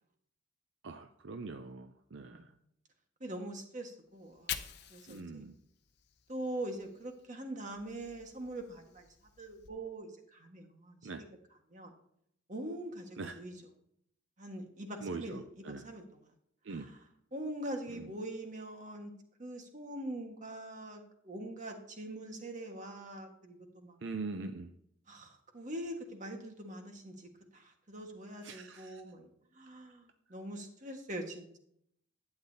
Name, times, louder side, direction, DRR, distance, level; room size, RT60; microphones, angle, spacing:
voice 1, 0.8-2.5 5.1-5.6 11.0-11.2 13.2-13.4 15.0-15.9 16.6-16.9 17.9-18.1 24.0-24.7 28.4-29.0, right 3 dB, 70° right, 8 dB, 0.6 m, -42 dB
voice 2, 3.2-5.4 6.3-9.1 9.4-10.9 11.7-11.9 12.5-13.5 14.4-16.3 16.7-17.1 17.3-19.1 19.4-24.0 25.1-31.6, right 1 dB, 40° right, 4 dB, 1.5 m, -43 dB
Fire, 4.1-7.3 7.6-9.7, left 9 dB, 55° left, 0.7 m, -47 dB
11.5 x 8.9 x 2.8 m, 0.71 s
head